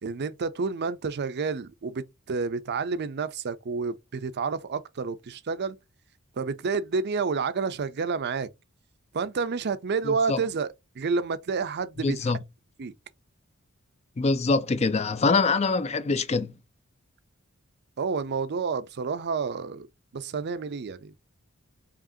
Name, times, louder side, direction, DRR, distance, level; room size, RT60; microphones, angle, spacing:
voice 1, 0.0-5.8 6.4-8.5 9.1-12.2 12.8-12.9 18.0-19.9 20.1-21.1, right 5 dB, 50° right, 0.5 m, -29 dB
voice 2, 10.1-10.4 12.0-12.4 14.2-16.5, left 3 dB, 30° left, 0.4 m, -24 dB
4.9 x 2.9 x 2.7 m
head